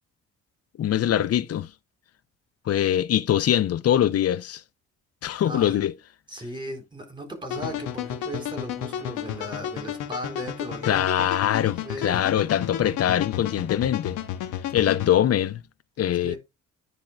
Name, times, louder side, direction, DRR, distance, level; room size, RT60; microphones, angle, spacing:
voice 1, 0.8-1.7 2.7-4.6 5.2-5.9 10.8-14.2 14.7-15.6 16.0-16.4, left 11 dB, 55° left, 0.6 m, -23 dB
voice 2, 5.4-5.8 6.3-11.0 11.8-12.2 16.2-16.4, equal, 15° right, 3.9 m, -36 dB
sound 1, 7.5-15.1, left 10 dB, 85° left, 1.1 m, -32 dB
10.0 x 3.6 x 3.3 m
cardioid pair, 90°, 30 cm